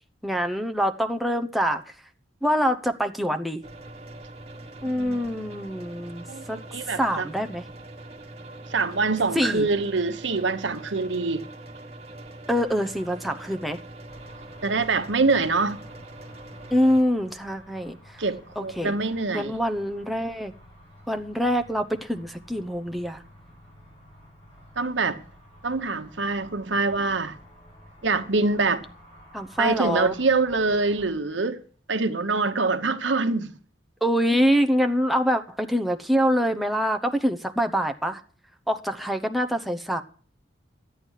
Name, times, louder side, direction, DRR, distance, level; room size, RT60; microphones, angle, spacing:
voice 1, 0.2-1.8 2.4-3.6 4.8-7.6 9.3-9.7 12.5-13.8 16.7-18.2 18.6-18.9 19.3-20.5 21.1-23.2 29.3-30.2 34.0-38.2 38.7-40.0, equal, ahead, 0.8 m, -25 dB
sound 1, 3.6-17.0, right 2 dB, 35° right, 1.6 m, -43 dB
voice 2, 4.8-5.2 6.3-7.3 8.7-11.5 14.6-15.8 18.2-19.5 24.8-25.2 25.6-27.4 28.0-28.9 29.6-31.6 31.9-33.6, right 3 dB, 75° right, 1.1 m, -25 dB
sound 2, 14.1-31.1, equal, 30° left, 7.8 m, -51 dB
13.0 x 9.2 x 6.5 m
head